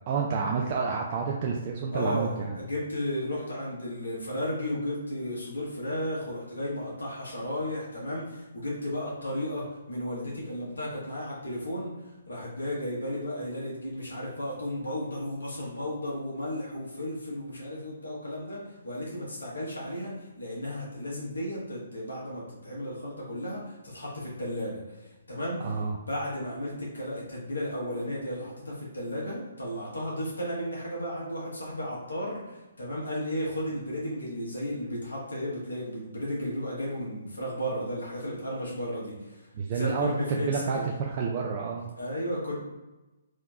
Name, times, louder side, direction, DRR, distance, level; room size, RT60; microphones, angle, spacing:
voice 1, 0.1-2.6 25.6-26.0 39.5-41.9, right 5 dB, 35° right, -1 dB, 0.3 m, -29 dB
voice 2, 1.9-11.9 12.3-25.7 26.0-40.9 42.0-42.5, equal, 75° left, -5 dB, 1.4 m, -34 dB
3.5 x 2.8 x 2.3 m, 1.1 s
figure-of-eight pair, 130°, 0 cm